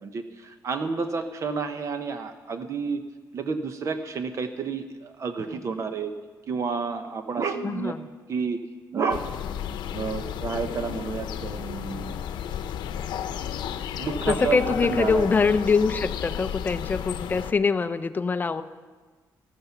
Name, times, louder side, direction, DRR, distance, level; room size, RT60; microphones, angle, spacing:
voice 1, 0.0-3.0 3.3-6.1 6.5-7.9 8.3-8.6 8.9-9.3 9.9-12.2 14.0-15.3, right 5 dB, 40° right, 8 dB, 0.8 m, -30 dB
voice 2, 7.6-8.1 14.3-18.6, left 5 dB, 25° left, 12 dB, 0.5 m, -24 dB
sound 1, 9.1-17.5, left 9 dB, 90° left, 0.7 m, -33 dB
14.0 x 14.0 x 5.8 m, 1.4 s
cardioid pair, 150°, 8 cm